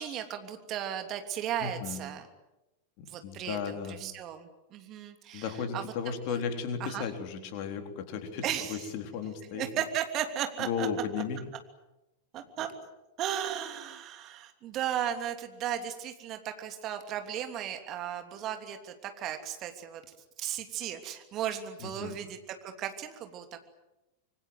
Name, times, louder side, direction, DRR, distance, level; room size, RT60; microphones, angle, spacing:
voice 1, 0.0-2.3 3.1-6.4 6.8-7.1 8.4-8.9 9.5-11.1 12.3-12.7 13.2-20.0 20.4-23.6, right 10 dB, 35° right, 6 dB, 3.0 m, -36 dB
voice 2, 1.6-2.0 3.0-4.0 5.3-9.9 10.6-11.4 12.6-12.7 21.8-22.2, left 6 dB, 45° left, 6 dB, 3.8 m, -35 dB
26.0 x 24.5 x 7.9 m, 0.97 s
figure-of-eight pair, 90°, 0 cm